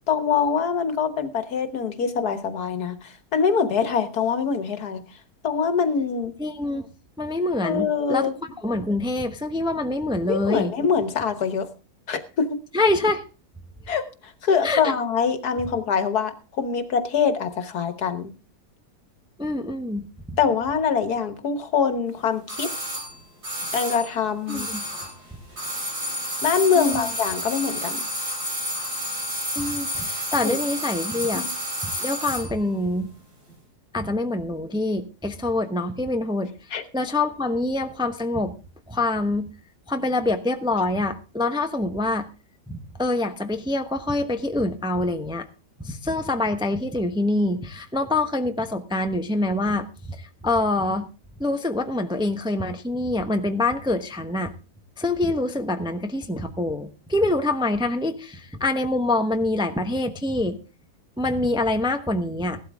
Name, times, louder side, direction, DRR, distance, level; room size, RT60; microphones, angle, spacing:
voice 1, 0.0-5.0 5.4-6.4 7.6-8.3 10.3-11.7 12.1-12.6 13.9-18.3 20.4-22.8 23.7-24.7 26.4-28.1 30.4-30.6 31.3-31.5 36.7-36.8, left 6 dB, 70° left, 10 dB, 1.9 m, -24 dB
voice 2, 6.4-6.9 7.2-8.3 8.6-10.7 12.7-13.2 14.6-14.8 19.4-20.4 24.5-24.8 26.8-27.0 29.6-31.5 32.0-33.1 33.9-36.5 36.9-38.5 38.9-39.5 39.9-42.3 42.7-45.5 45.8-51.1 51.4-54.5 55.0-60.6 61.2-62.6, left 2 dB, 5° right, 6 dB, 0.8 m, -25 dB
sound 1, 22.5-25.2 25.5-32.5 32.8-32.9, equal, 70° right, 5.5 m, -30 dB
16.0 x 12.5 x 3.6 m, 0.33 s
omnidirectional pair, 1.7 m